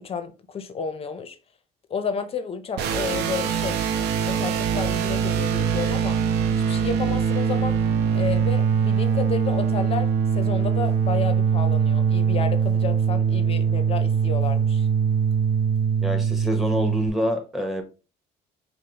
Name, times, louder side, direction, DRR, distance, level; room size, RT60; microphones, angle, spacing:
voice 1, 0.0-1.4 1.9-3.8 4.2-6.2 6.5-7.8 8.1-14.9, left 5 dB, 35° left, 0.5 m, -31 dB
sound 1, 2.8-17.1, right 7 dB, 85° right, 0.5 m, -22 dB
voice 2, 16.0-17.8, left 1 dB, ahead, 0.9 m, -26 dB
4.8 x 2.0 x 2.9 m
cardioid pair, 110°, 17 cm